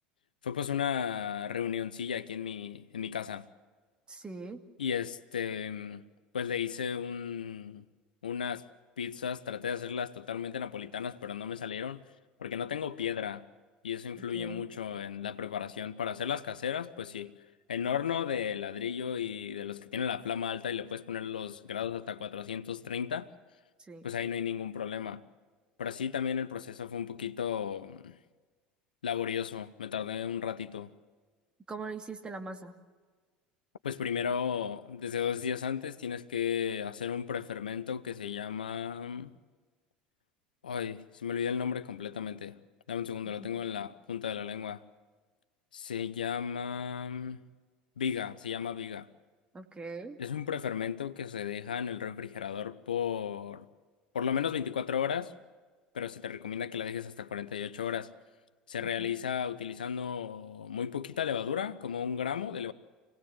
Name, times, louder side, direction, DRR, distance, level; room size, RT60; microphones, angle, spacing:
voice 1, 0.4-3.5 4.8-6.0 6.3-7.9 8.2-8.7 9.0-12.0 12.4-13.5 13.8-17.3 17.7-23.3 24.0-25.2 25.8-28.2 29.0-30.9 33.8-39.3 40.6-42.6 42.9-44.8 45.7-47.4 48.0-49.1 50.2-53.7 54.1-55.3 55.9-58.1 58.7-62.7, left 8 dB, 80° left, 0.8 m, -34 dB
voice 2, 4.1-4.6 14.3-14.7 23.8-24.1 31.7-32.7 43.2-43.6 49.5-50.2 58.8-59.2, right 3 dB, 20° right, 2.4 m, -42 dB
27.5 x 18.5 x 7.9 m
figure-of-eight pair, 70°, 5 cm